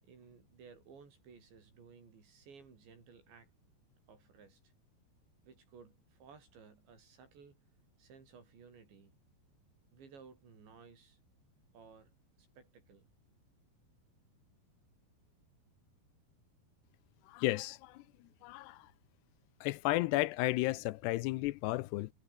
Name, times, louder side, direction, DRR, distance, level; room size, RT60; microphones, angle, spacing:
voice 1, 0.0-3.5 4.1-4.7 5.4-7.6 8.0-9.1 9.9-11.2 11.7-12.1 12.6-13.1, right 5 dB, 85° right, 8.2 m, -57 dB
voice 2, 17.3-17.9 18.4-18.8 19.6-22.1, left 19 dB, 80° left, 2.6 m, -33 dB
omnidirectional pair, 5.0 m